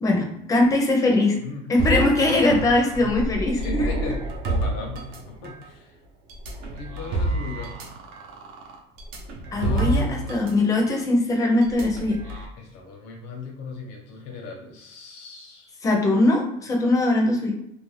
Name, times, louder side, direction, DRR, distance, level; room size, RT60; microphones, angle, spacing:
voice 1, 0.0-1.4 1.7-3.9 9.5-12.3 15.8-17.5, left 2 dB, 15° left, 1 dB, 0.5 m, -21 dB
voice 2, 1.4-1.7 3.0-3.2 3.5-5.9 6.7-7.7 9.5-10.5 12.6-15.8, left 4 dB, 75° left, 1 dB, 0.8 m, -37 dB
sound 1, 1.8-5.7 6.3-10.5 10.8-11.0 11.6-12.5, right 2 dB, 65° right, 0.6 m, -29 dB
2.5 x 2.2 x 3.1 m, 0.77 s
cardioid pair, 160°, 19 cm